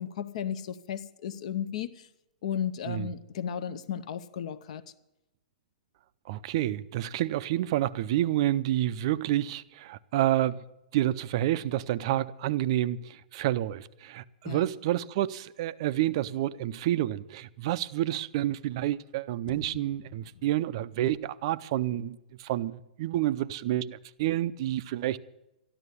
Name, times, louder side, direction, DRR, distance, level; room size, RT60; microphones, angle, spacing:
voice 1, 0.0-2.1 2.4-4.8 14.5-14.7, left 9 dB, 50° left, 0.7 m, -34 dB
voice 2, 6.3-10.6 10.9-25.2, right 13 dB, 35° right, 0.5 m, -29 dB
sound 1, 18.4-18.5 18.7-18.8 19.5-21.3, left 6 dB, 80° left, 0.8 m, -49 dB
13.5 x 11.0 x 8.2 m
hypercardioid pair, 170°, 5 cm